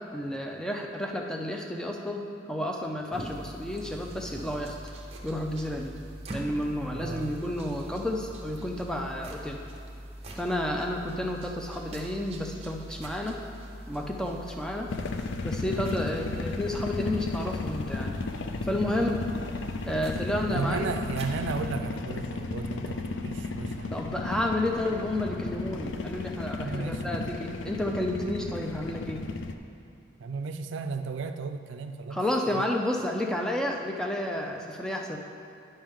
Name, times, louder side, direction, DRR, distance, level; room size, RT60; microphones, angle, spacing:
voice 1, 0.1-4.8 5.2-6.0 6.3-9.6 10.3-13.4 13.9-14.9 15.4-18.2 18.6-19.2 19.9-20.9 23.9-29.3 32.1-35.2, left 1 dB, 5° left, 1 dB, 0.4 m, -31 dB
sound 1, 3.1-21.8, right 1 dB, 30° right, 0.7 m, -43 dB
voice 2, 6.9-7.3 15.7-15.9 20.5-24.0 26.6-27.3 30.2-32.2 32.5-32.6, right 4 dB, 75° right, 8 dB, 0.4 m, -34 dB
sound 2, 14.9-29.5, left 3 dB, 75° left, 0.4 m, -34 dB
10.0 x 5.5 x 3.5 m, 2.7 s
head